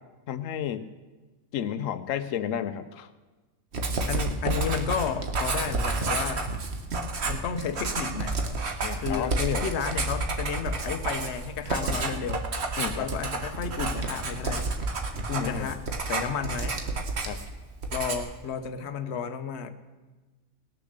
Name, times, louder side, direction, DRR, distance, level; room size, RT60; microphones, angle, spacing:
voice 1, 0.3-0.9 1.5-3.1 8.8-9.7 12.8-13.1 15.3-15.7 17.2-17.4, left 9 dB, 90° left, 11 dB, 1.0 m, -31 dB
Writing, 3.7-17.5 17.8-18.4, right 3 dB, 55° right, 1.5 m, -30 dB
voice 2, 4.1-6.5 7.2-8.4 9.0-12.5 12.9-14.7 15.3-15.8 16.1-16.8 17.9-19.7, left 7 dB, 60° left, 9 dB, 1.1 m, -32 dB
19.5 x 6.9 x 6.5 m, 1.2 s
omnidirectional pair, 1.3 m